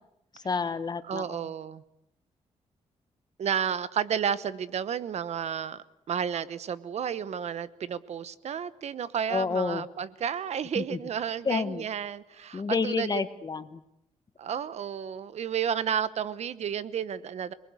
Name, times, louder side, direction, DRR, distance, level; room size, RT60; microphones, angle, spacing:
voice 1, 0.3-1.5 9.3-9.9 10.7-11.0 11.4-11.8 12.5-13.8, left 4 dB, 35° left, 12 dB, 1.3 m, -30 dB
voice 2, 1.1-1.8 3.4-13.3 14.4-17.5, right 8 dB, 65° right, 16 dB, 1.0 m, -32 dB
27.5 x 20.0 x 8.2 m, 0.79 s
wide cardioid pair, 130°, 12 cm